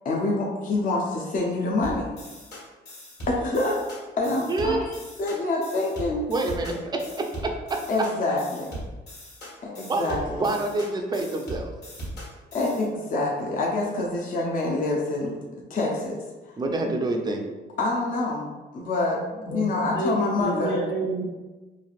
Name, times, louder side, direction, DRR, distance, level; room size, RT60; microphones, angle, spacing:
voice 1, 0.0-2.1 3.3-3.8 4.2-6.2 7.9-8.7 9.6-10.5 12.5-15.4 15.7-16.2 17.8-18.5 18.7-19.2 19.5-20.7, left 2 dB, 45° left, -2 dB, 0.5 m, -26 dB
sound 1, 1.8-12.9, right 1 dB, 60° left, 1.2 m, -39 dB
voice 2, 4.5-4.8 6.3-7.8 9.9-11.7 16.6-17.4, right 2 dB, 20° right, 3 dB, 0.4 m, -27 dB
voice 3, 19.4-21.3, right 2 dB, 75° left, -6 dB, 1.5 m, -29 dB
3.2 x 2.4 x 2.4 m, 1.2 s
cardioid pair, 90°, 20 cm